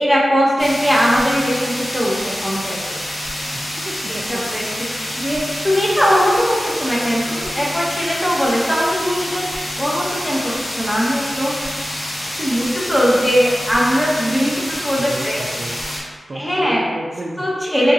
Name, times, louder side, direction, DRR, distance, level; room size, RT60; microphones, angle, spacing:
voice 1, 0.0-2.8 4.1-4.6 5.2-11.9 12.4-15.8 16.3-16.8 17.4-17.9, equal, 10° left, -6 dB, 0.9 m, -20 dB
sound 1, 0.6-16.0, left 1 dB, 60° left, 1.1 m, -27 dB
voice 2, 3.5-4.6 15.0-15.8 16.3-17.9, right 1 dB, 50° right, -1 dB, 0.3 m, -32 dB
2.9 x 2.6 x 3.7 m, 1.5 s
wide cardioid pair, 95°, 0 cm